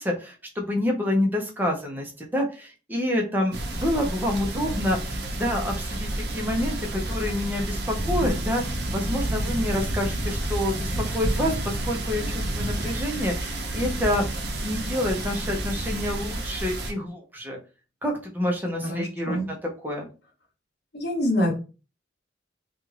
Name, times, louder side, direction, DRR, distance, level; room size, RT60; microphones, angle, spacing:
voice 1, 0.0-5.0 5.4-14.2 14.6-17.6 18.0-19.6 19.8-20.1, left 1 dB, 10° right, 0 dB, 0.6 m, -28 dB
sound 1, 3.5-16.9, right 1 dB, 60° right, 0.6 m, -29 dB
voice 2, 18.9-19.5 20.9-21.5, equal, 60° left, 0 dB, 0.9 m, -25 dB
2.5 x 2.3 x 3.1 m, 0.33 s
head